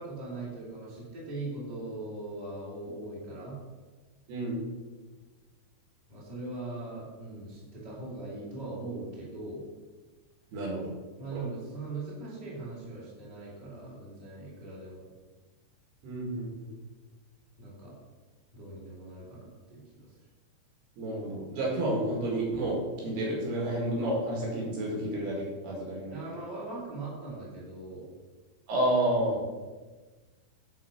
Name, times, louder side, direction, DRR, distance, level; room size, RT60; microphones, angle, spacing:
voice 1, 0.0-3.6 6.1-9.6 11.2-15.1 17.6-18.0 18.5-20.1 26.1-28.1, right 2 dB, 10° right, -7 dB, 2.4 m, -40 dB
voice 2, 4.3-4.6 10.5-10.9 11.3-11.4 16.0-16.7 21.0-22.8 23.0-26.2 28.7-29.4, right 1 dB, 65° right, -3 dB, 3.7 m, -30 dB
11.5 x 4.3 x 5.9 m, 1.3 s
omnidirectional pair, 5.3 m